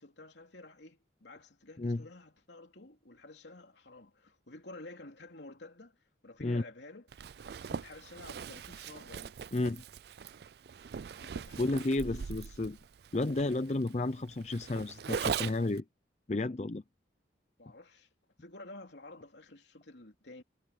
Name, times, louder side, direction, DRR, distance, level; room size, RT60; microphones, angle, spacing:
voice 1, 0.0-7.1 7.7-9.4 11.2-11.8 17.6-18.1 18.4-20.4, left 2 dB, 70° left, 3.0 m, -51 dB
Zipper (clothing), 7.1-15.8, right 6 dB, 60° right, 0.4 m, -40 dB
voice 2, 9.5-9.8 11.6-12.8 13.1-15.8 16.3-16.8, left 2 dB, 35° left, 0.5 m, -32 dB
head